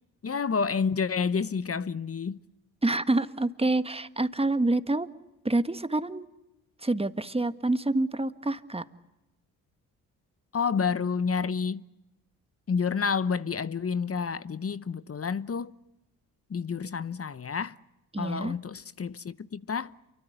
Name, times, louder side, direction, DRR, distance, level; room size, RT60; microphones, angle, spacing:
voice 1, 0.2-2.4 10.5-11.8 12.7-15.7 16.5-17.8 18.2-20.0, left 5 dB, 35° left, 0.9 m, -29 dB
voice 2, 2.8-5.1 5.4-6.3 6.8-8.8 18.1-18.5, right 2 dB, 15° right, 1.6 m, -27 dB
29.0 x 24.0 x 8.0 m
hypercardioid pair, 45°, 42 cm